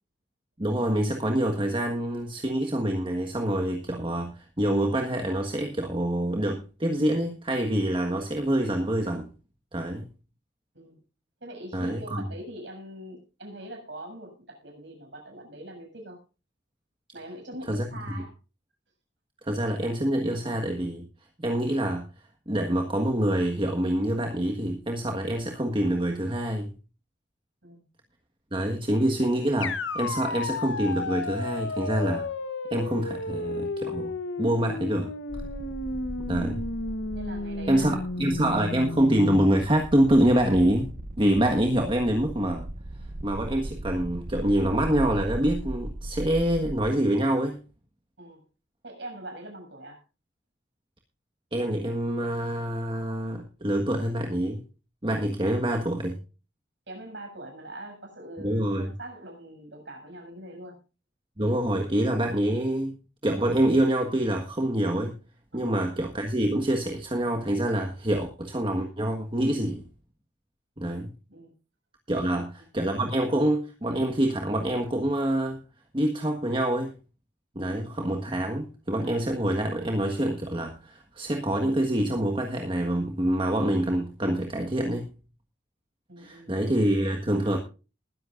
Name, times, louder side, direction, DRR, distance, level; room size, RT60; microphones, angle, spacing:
voice 1, 0.6-9.3 9.7-10.1 11.7-12.3 17.7-17.9 19.4-21.1 21.4-22.1 22.5-26.7 28.5-32.3 32.7-34.1 34.4-35.1 36.3-36.7 37.7-40.9 41.2-42.7 43.2-47.6 51.5-54.6 55.0-56.2 58.4-58.9 61.4-63.0 63.2-65.2 65.5-69.8 70.8-71.1 72.1-72.5 72.7-75.6 75.9-76.9 77.5-85.1 86.2-87.6, right 1 dB, 25° right, 3 dB, 1.5 m, -26 dB
voice 2, 11.4-16.2 17.1-18.3 27.6-27.8 37.1-38.4 48.2-48.4 48.8-50.0 56.9-60.8 65.5-65.7 71.3-71.5 72.1-72.7 86.1-86.5, right 1 dB, 65° right, 3 dB, 7.0 m, -43 dB
sound 1, 29.6-39.5, left 3 dB, 75° left, 1.1 m, -33 dB
sound 2, 35.3-46.9, right 1 dB, 45° right, 0.9 m, -38 dB
20.5 x 11.0 x 2.5 m, 0.32 s
head